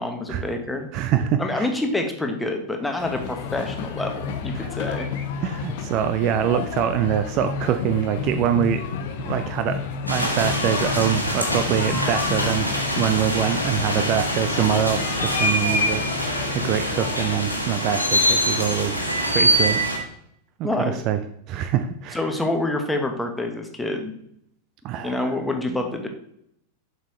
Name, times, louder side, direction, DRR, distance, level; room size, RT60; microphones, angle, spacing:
voice 1, 0.0-0.9 1.4-5.1 20.6-21.0 22.1-24.1 25.0-26.1, left 2 dB, 5° left, 4 dB, 1.0 m, -27 dB
voice 2, 0.9-1.7 4.6-4.7 5.4-8.8 9.2-9.8 10.1-12.7 13.0-19.0 19.3-19.8 20.6-21.2 21.5-22.2 24.8-25.3, right 10 dB, 40° right, 9 dB, 0.4 m, -24 dB
sound 1, 3.0-17.3, left 6 dB, 50° left, 0.7 m, -31 dB
sound 2, 10.1-20.0, equal, 90° left, 1.3 m, -24 dB
7.2 x 5.6 x 3.1 m, 0.71 s
figure-of-eight pair, 90°, 0 cm